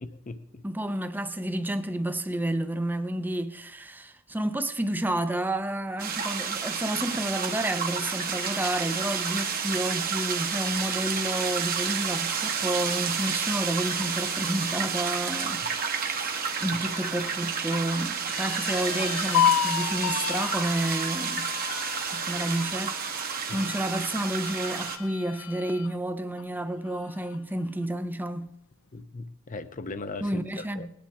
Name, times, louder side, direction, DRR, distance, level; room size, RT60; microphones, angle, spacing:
voice 1, 0.0-0.6 23.5-23.6 28.9-30.9, left 3 dB, 40° left, 0.8 m, -39 dB
voice 2, 0.6-21.5 22.1-23.0 23.5-28.5 30.2-30.9, right 1 dB, 10° right, 0.6 m, -30 dB
sound 1, 6.0-25.0, right 6 dB, 45° right, 1.3 m, -30 dB
sound 2, 18.3-25.9 26.4-26.5 26.9-27.5, left 9 dB, 90° left, 0.5 m, -31 dB
20.0 x 10.5 x 3.6 m
head